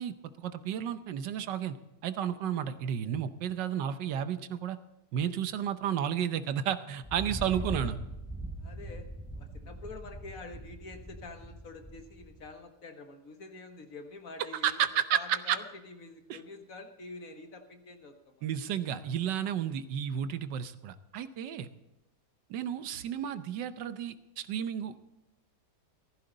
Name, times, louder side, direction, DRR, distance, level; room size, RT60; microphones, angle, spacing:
voice 1, 0.0-1.8 2.0-4.8 5.1-8.0 14.5-15.6 16.3-16.4 18.4-21.7 22.5-25.0, right 9 dB, 90° right, 12 dB, 1.5 m, -32 dB
Thunder, 7.0-12.5, right 1 dB, ahead, 3.4 m, -41 dB
voice 2, 7.4-7.9 8.6-9.1 9.4-14.8 15.1-18.5, left 3 dB, 55° left, 5 dB, 1.7 m, -47 dB
15.0 x 15.0 x 4.0 m, 0.97 s
omnidirectional pair, 1.8 m